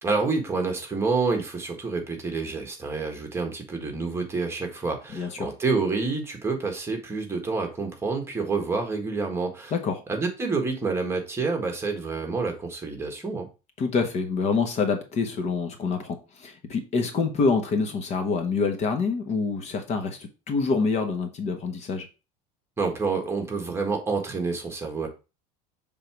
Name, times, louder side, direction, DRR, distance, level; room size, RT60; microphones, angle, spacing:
voice 1, 0.0-9.7 10.1-13.5 22.8-25.1, right 4 dB, 15° right, 3 dB, 1.6 m, -28 dB
voice 2, 5.1-5.5 9.7-10.0 13.8-22.1, left 4 dB, 40° left, 6 dB, 1.2 m, -26 dB
6.7 x 3.7 x 4.5 m, 0.29 s
cardioid pair, 140°, 17 cm